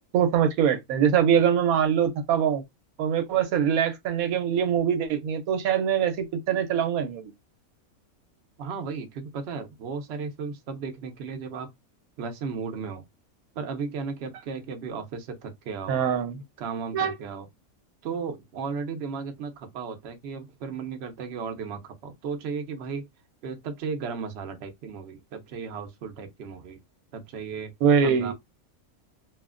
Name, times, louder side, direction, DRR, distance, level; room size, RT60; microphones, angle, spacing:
voice 1, 0.0-2.6 3.0-7.3 15.9-16.4 16.9-17.1 27.8-28.3, right 8 dB, 85° right, 1.1 m, -23 dB
voice 2, 8.6-11.7 12.2-13.0 13.5-16.0 16.6-17.5 18.0-23.0 23.4-26.8 27.1-27.7 28.0-28.3, right 5 dB, 60° right, 0.8 m, -35 dB
2.8 x 2.4 x 2.4 m
omnidirectional pair, 1.5 m